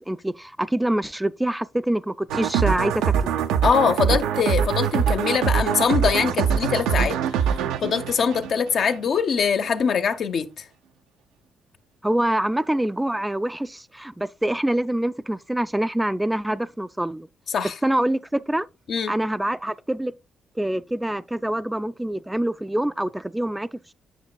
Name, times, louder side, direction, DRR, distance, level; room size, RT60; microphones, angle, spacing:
voice 1, 0.1-3.3 12.0-17.3 17.8-18.7 19.1-20.1 20.6-23.9, right 1 dB, 10° right, 0.3 m, -25 dB
sound 1, 2.3-9.1, right 8 dB, 80° right, 0.4 m, -23 dB
voice 2, 3.6-7.2 7.8-10.6 17.5-17.7 18.9-19.1, left 6 dB, 60° left, 0.6 m, -23 dB
8.0 x 5.9 x 2.2 m
hypercardioid pair, 45°, 0 cm